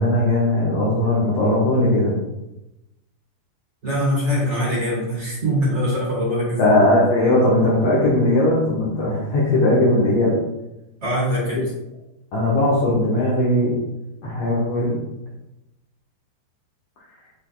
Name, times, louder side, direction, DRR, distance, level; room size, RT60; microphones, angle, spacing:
voice 1, 0.0-2.1 6.6-10.3 12.3-13.7 14.2-14.9, left 1 dB, 75° left, -6 dB, 1.4 m, -18 dB
voice 2, 3.8-6.6 11.0-11.6, equal, 35° right, -5 dB, 2.4 m, -22 dB
9.9 x 5.5 x 2.3 m, 0.94 s
omnidirectional pair, 5.0 m